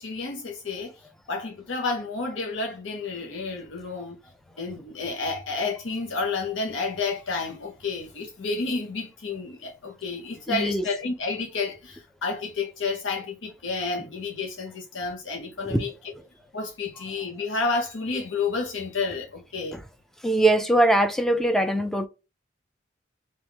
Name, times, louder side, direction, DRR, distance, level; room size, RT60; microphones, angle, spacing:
voice 1, 0.0-4.2 4.6-15.9 16.5-19.8, left 4 dB, 80° left, 0.8 m, -30 dB
voice 2, 10.5-10.8 15.7-15.8 19.7-19.8 20.2-22.1, right 1 dB, ahead, 0.4 m, -21 dB
3.5 x 3.0 x 3.4 m
head